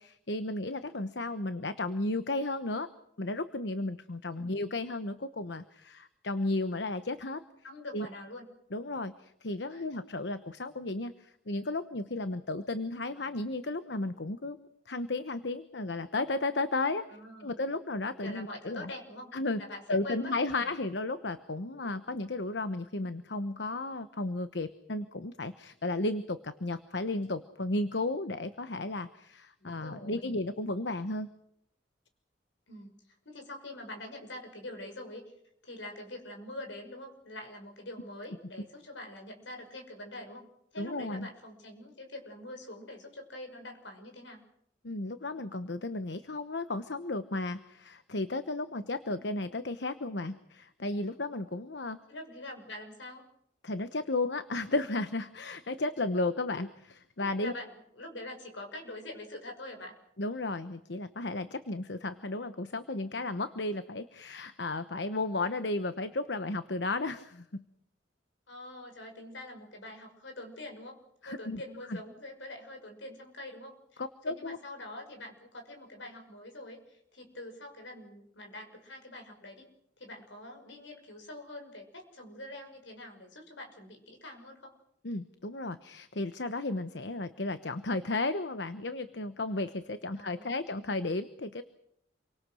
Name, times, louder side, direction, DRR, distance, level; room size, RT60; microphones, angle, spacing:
voice 1, 0.0-2.9 3.2-7.4 7.9-8.1 8.7-14.6 14.9-17.1 17.4-18.9 19.3-19.6 19.9-31.3 40.8-41.3 44.8-52.0 53.6-57.5 60.2-67.6 71.2-71.6 71.9-72.0 74.0-74.6 85.0-91.6, left 2 dB, 70° left, 11 dB, 1.1 m, -34 dB
voice 2, 7.6-8.5 9.7-9.8 17.1-17.6 18.2-19.3 19.6-20.3 20.6-20.7 29.6-30.4 32.7-35.3 35.6-40.5 40.7-44.4 49.1-49.2 52.1-53.3 57.4-59.9 68.5-74.0 74.3-79.7 80.0-84.8 90.1-90.5, left 1 dB, 85° left, 4 dB, 6.0 m, -45 dB
28.5 x 24.0 x 6.4 m, 0.74 s
head